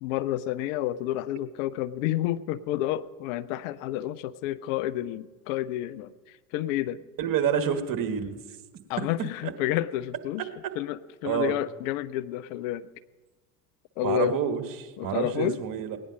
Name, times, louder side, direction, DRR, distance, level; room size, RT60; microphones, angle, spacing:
voice 1, 0.0-7.0 8.9-10.5 10.8-12.9 14.0-14.4 15.0-15.6, left 13 dB, 60° left, 15 dB, 0.7 m, -30 dB
voice 2, 7.2-8.4 9.4-9.5 11.2-11.5 14.0-16.0, right 8 dB, 45° right, 7 dB, 1.5 m, -28 dB
18.0 x 9.8 x 5.2 m, 1.3 s
hypercardioid pair, 65°, 45 cm